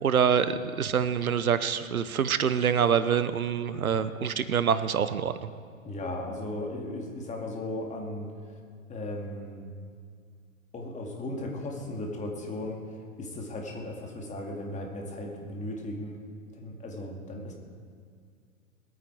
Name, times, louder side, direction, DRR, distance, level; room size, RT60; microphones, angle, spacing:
voice 1, 0.0-5.5, right 7 dB, 90° right, 13 dB, 0.8 m, -26 dB
voice 2, 5.8-8.3 8.9-9.7 10.7-16.2 16.5-17.5, left 1 dB, 15° left, 1 dB, 2.2 m, -36 dB
21.0 x 9.1 x 4.6 m, 2.2 s
hypercardioid pair, 110°, 41 cm